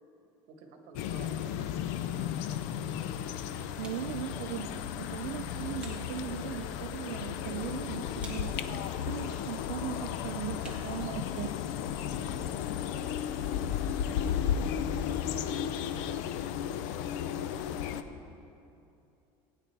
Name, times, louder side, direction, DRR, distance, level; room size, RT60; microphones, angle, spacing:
voice 1, 0.5-3.0, right 4 dB, 60° right, 3 dB, 1.5 m, -52 dB
sound 1, 0.9-18.0, left 9 dB, 70° left, 0.5 m, -34 dB
voice 2, 3.8-8.6 9.1-11.5, right 11 dB, 90° right, 5 dB, 0.5 m, -38 dB
sound 2, 5.1-11.6, right 2 dB, 10° right, 1.2 m, -57 dB
17.0 x 9.5 x 3.4 m, 2.7 s
cardioid pair, 165°, 11 cm